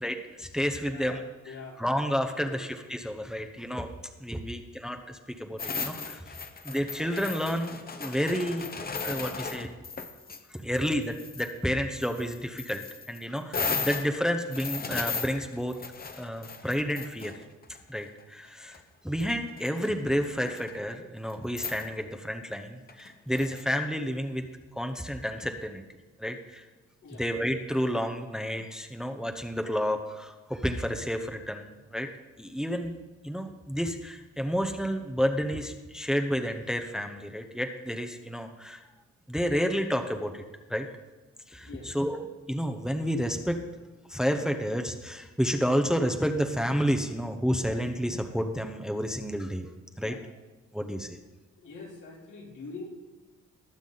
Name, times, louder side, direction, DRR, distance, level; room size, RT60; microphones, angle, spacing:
voice 1, 0.0-3.9 4.2-6.2 6.6-9.8 10.5-15.8 16.2-17.3 17.9-18.8 19.0-24.4 24.8-25.8 26.2-26.7 27.1-32.1 32.4-38.8 39.3-40.4 40.7-40.9 41.5-43.6 44.1-49.7 50.0-50.2 50.7-51.2, equal, ahead, 5 dB, 0.8 m, -30 dB
voice 2, 0.8-1.2 1.4-1.8 2.4-2.6 27.0-27.2 41.6-42.0 50.0-50.2 51.6-52.9, left 3 dB, 80° left, -3 dB, 3.3 m, -44 dB
sound 1, 5.6-10.4 10.8-11.5 12.0-17.8 18.7-18.8 19.2-19.9 20.2-20.7 21.3-21.4 21.6-21.9 22.9-23.6, left 4 dB, 30° left, 0.9 m, -36 dB
20.0 x 7.1 x 4.0 m, 1.2 s
cardioid pair, 115°, 30 cm